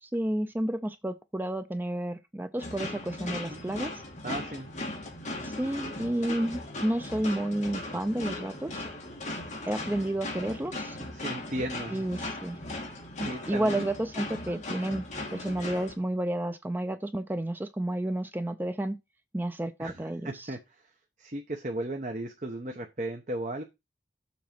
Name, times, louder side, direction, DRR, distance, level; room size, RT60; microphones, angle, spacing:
voice 1, 0.0-4.0 5.4-8.8 9.7-11.0 11.9-12.6 13.2-15.1 15.3-19.0 19.3-20.5, right 1 dB, 10° right, 0.4 m, -31 dB
sound 1, 2.6-16.0, left 2 dB, 40° left, 2.4 m, -38 dB
voice 2, 4.2-4.7 11.1-12.0 13.2-13.8 14.5-14.6 19.8-20.8 21.2-23.6, right 1 dB, 40° right, 0.9 m, -36 dB
7.3 x 4.1 x 5.9 m
head